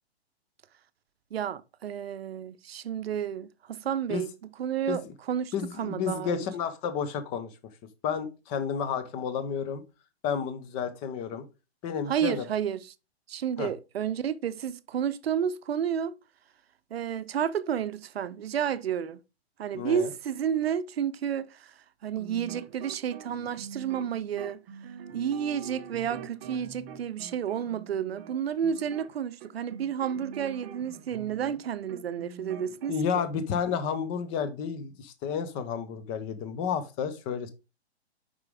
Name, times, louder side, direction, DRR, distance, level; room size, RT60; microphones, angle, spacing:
voice 1, 1.3-4.3 4.6-6.5 12.1-12.9 13.3-16.1 16.9-19.2 19.6-21.7 22.0-24.6 25.1-33.3, right 8 dB, 65° right, 0.7 m, -31 dB
voice 2, 5.5-7.5 8.0-9.8 10.2-11.4 11.8-12.5 13.6-13.7 19.7-20.1 32.9-37.5, left 7 dB, 15° left, 0.6 m, -31 dB
sound 1, 22.1-31.6 31.9-32.9, right 7 dB, 25° right, 0.8 m, -45 dB
6.5 x 5.2 x 3.5 m
hypercardioid pair, 140°, 33 cm